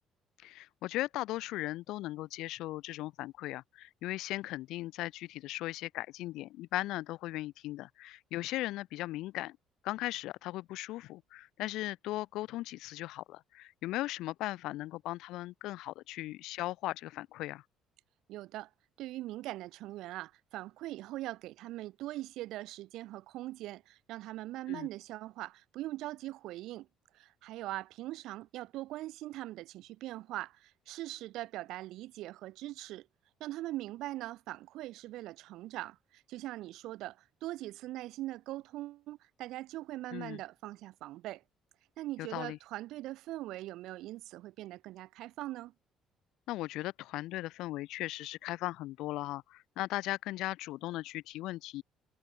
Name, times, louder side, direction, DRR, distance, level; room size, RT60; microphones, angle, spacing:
voice 1, 0.4-9.6 9.8-17.6 24.7-24.9 40.1-40.4 42.2-42.6 46.5-51.8, left 17 dB, 80° left, 2.9 m, -38 dB
voice 2, 18.3-18.7 19.0-26.9 27.1-33.1 33.4-41.4 42.0-45.7, right 16 dB, 80° right, 3.9 m, -41 dB
cardioid pair, 135°, 0 cm